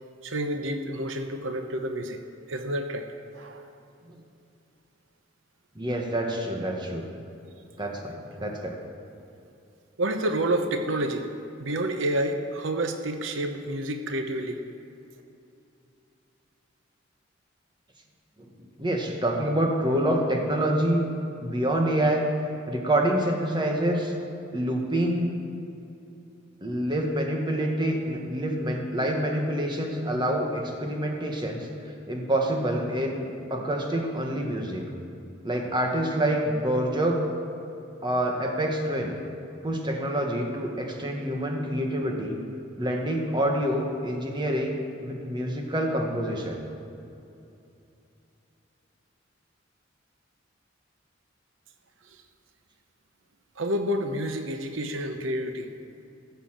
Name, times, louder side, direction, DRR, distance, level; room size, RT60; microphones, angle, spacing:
voice 1, 0.2-2.2 2.5-3.7 10.0-11.3 11.6-14.6 52.1-52.2 53.6-55.7, right 1 dB, 85° right, 7 dB, 0.9 m, -29 dB
voice 2, 5.7-7.0 7.8-8.8 18.4-21.1 21.4-22.3 22.7-24.1 24.5-25.3 26.6-31.7 32.1-34.8 35.4-37.2 38.0-39.2 39.6-42.4 42.8-46.6, right 1 dB, 25° right, 1 dB, 1.5 m, -27 dB
14.5 x 7.0 x 7.5 m, 2.7 s
head